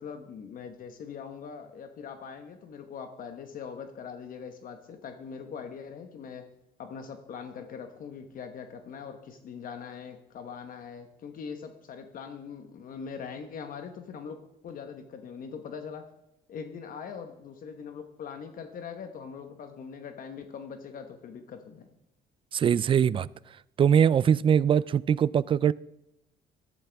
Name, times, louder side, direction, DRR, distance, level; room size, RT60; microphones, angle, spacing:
voice 1, 0.0-6.5 6.8-14.4 14.6-16.0 16.5-21.9, left 6 dB, 55° left, 1.1 m, -42 dB
voice 2, 22.5-23.3 23.8-25.7, right 8 dB, 30° right, 0.3 m, -22 dB
13.5 x 12.0 x 3.5 m
cardioid pair, 110°, 17 cm